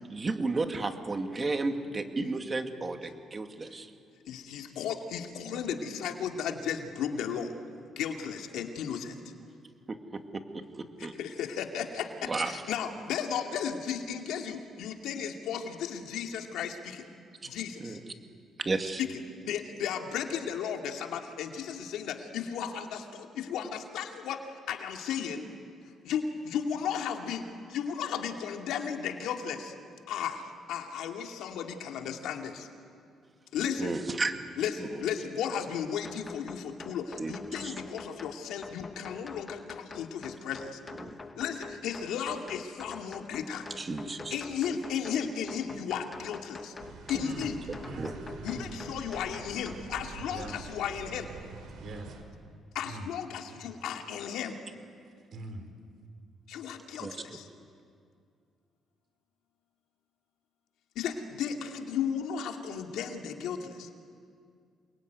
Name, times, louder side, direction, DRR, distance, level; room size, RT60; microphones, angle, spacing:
voice 1, 0.1-3.9 9.9-11.2 12.3-12.6 17.8-18.0 18.6-19.0 33.8-34.3 34.8-35.0 37.2-37.3 37.6-37.7 41.0-41.2 43.8-44.4 47.1-47.2 47.9-48.1 57.0-57.1, right 3 dB, 30° right, 6 dB, 2.3 m, -33 dB
voice 2, 4.3-7.5 8.0-9.2 11.0-17.0 17.5-18.0 19.0-24.4 24.7-25.5 26.0-29.7 30.1-32.7 33.5-33.9 34.6-40.8 41.4-43.7 44.3-46.7 47.1-47.6 48.4-51.3 52.7-54.6 56.5-57.5 61.0-63.9, left 8 dB, 85° left, 3 dB, 2.5 m, -35 dB
sound 1, 36.0-49.8, left 4 dB, 30° left, 1.6 m, -46 dB
sound 2, 46.8-52.2, right 4 dB, 85° right, 4.0 m, -46 dB
voice 3, 51.8-52.2 52.8-53.1 55.3-55.6, right 2 dB, 60° right, 6 dB, 5.0 m, -42 dB
28.0 x 22.5 x 9.5 m, 2.3 s
cardioid pair, 100°, 0 cm